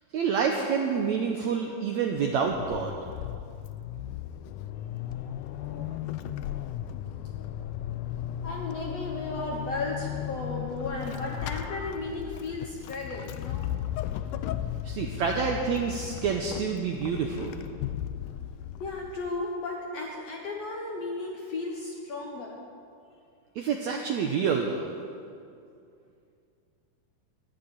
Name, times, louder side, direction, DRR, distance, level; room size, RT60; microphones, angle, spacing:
voice 1, 0.1-2.9 14.8-17.6 23.5-24.9, right 6 dB, 80° right, 2 dB, 1.6 m, -28 dB
Vehicle / Accelerating revving vroom / Squeak, 2.2-19.4, left 11 dB, 90° left, 1.7 m, -36 dB
voice 2, 5.1-5.8 8.4-13.7 18.8-22.6, left 2 dB, 60° left, 0 dB, 1.7 m, -35 dB
11.5 x 11.0 x 8.9 m, 2.4 s
omnidirectional pair, 4.3 m